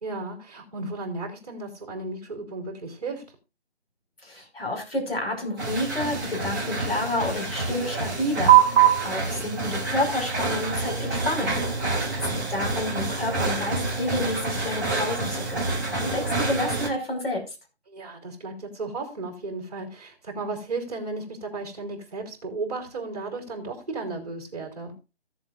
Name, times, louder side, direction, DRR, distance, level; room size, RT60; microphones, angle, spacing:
voice 1, 0.0-3.2 11.9-12.4 17.9-24.9, right 3 dB, 35° right, 2 dB, 3.3 m, -34 dB
voice 2, 4.2-11.6 12.5-17.5, left 1 dB, 60° left, 2 dB, 5.5 m, -30 dB
sound 1, 5.6-16.9, right 6 dB, 15° right, 1.9 m, -25 dB
16.0 x 7.4 x 2.6 m, 0.29 s
figure-of-eight pair, 170°, 34 cm